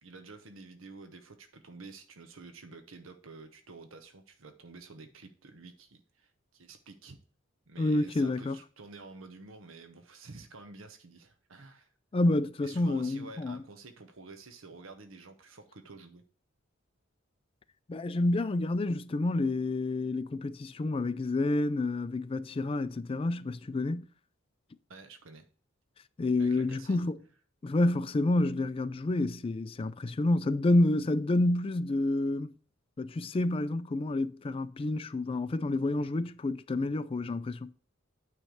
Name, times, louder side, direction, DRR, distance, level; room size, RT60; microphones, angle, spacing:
voice 1, 0.0-7.2 7.7-11.9 12.6-16.2 24.9-25.5 26.4-27.0, right 3 dB, 80° right, 0.9 m, -50 dB
voice 2, 7.8-8.6 12.1-13.6 17.9-24.1 26.2-27.2 27.6-32.5 33.0-37.7, left 2 dB, 30° left, 0.4 m, -29 dB
9.1 x 3.2 x 6.4 m
head